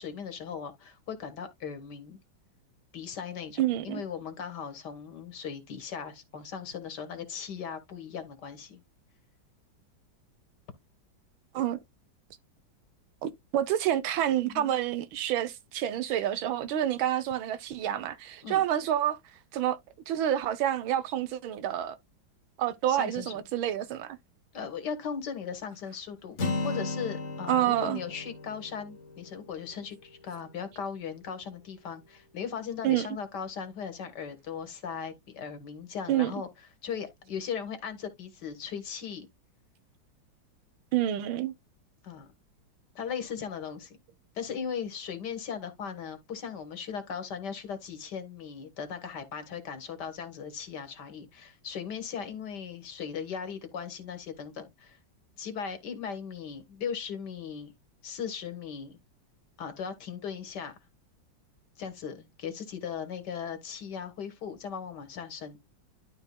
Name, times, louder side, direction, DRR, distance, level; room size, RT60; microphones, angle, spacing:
voice 1, 0.0-2.2 2.9-8.8 14.4-14.8 18.4-18.6 22.9-23.4 24.5-26.4 26.6-36.5 36.8-39.3 42.0-42.3 43.0-44.0 44.4-55.0 55.4-57.7 58.0-59.0 59.6-60.7 61.8-65.6, left 7 dB, 60° left, 1.8 m, -38 dB
voice 2, 3.6-4.0 11.5-11.8 13.2-19.2 19.5-19.8 20.1-22.0 22.6-24.2 27.5-28.0 32.8-33.1 36.1-36.3 40.9-41.5, right 11 dB, 80° right, 1.5 m, -28 dB
Acoustic guitar, 26.4-30.3, left 3 dB, 40° left, 1.2 m, -36 dB
12.5 x 4.4 x 2.2 m
omnidirectional pair, 2.2 m